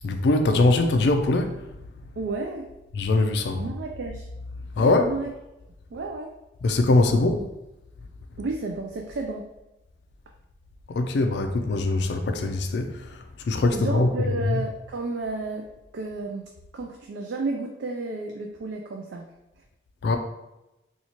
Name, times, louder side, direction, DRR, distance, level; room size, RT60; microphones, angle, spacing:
voice 1, 0.0-1.6 2.9-3.7 4.8-5.1 6.6-7.4 10.9-12.9 13.5-14.1 14.5-14.6 20.0-20.2, left 2 dB, 70° left, 6 dB, 0.4 m, -22 dB
voice 2, 2.2-2.7 3.5-4.3 4.8-5.3 5.9-6.3 7.1-7.2 8.4-9.5 13.7-15.6 15.9-19.3, right 3 dB, 80° right, 2 dB, 0.4 m, -32 dB
4.2 x 2.4 x 2.9 m, 0.95 s
head